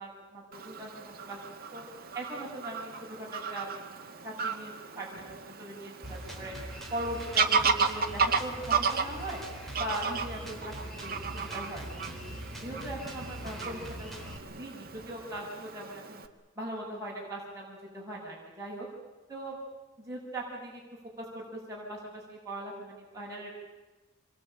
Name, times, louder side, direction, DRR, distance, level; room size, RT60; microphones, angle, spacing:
voice 1, 0.0-1.8 2.1-6.5 6.9-9.4 9.7-12.2 12.6-16.2 16.5-18.9 19.3-19.6 20.0-20.8 21.2-23.6, right 1 dB, 15° right, -5 dB, 6.8 m, -40 dB
Fowl / Bird vocalization bird call bird song, 0.5-16.3, right 5 dB, 50° right, 2.0 m, -34 dB
Drum kit, 6.0-14.4, equal, ahead, 4.1 m, -42 dB
26.5 x 22.5 x 9.0 m, 1.2 s
head